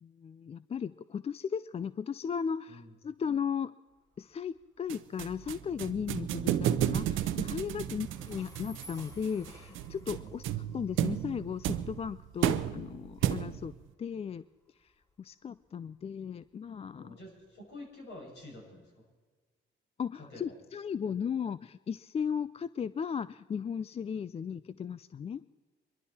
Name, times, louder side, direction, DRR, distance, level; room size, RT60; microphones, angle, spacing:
voice 1, 0.0-3.7 4.2-13.7 14.0-14.4 14.8-14.9 15.2-17.2 20.0-25.5, left 7 dB, 30° left, 16 dB, 0.4 m, -36 dB
Train, 3.9-18.6, equal, 15° left, 3.2 m, -59 dB
sound 1, 4.9-13.8, right 11 dB, 85° right, 0.7 m, -33 dB
voice 2, 16.9-19.1 20.1-20.5, left 2 dB, 60° left, -2 dB, 6.5 m, -49 dB
25.0 x 12.0 x 4.2 m, 1.4 s
cardioid pair, 90°, 20 cm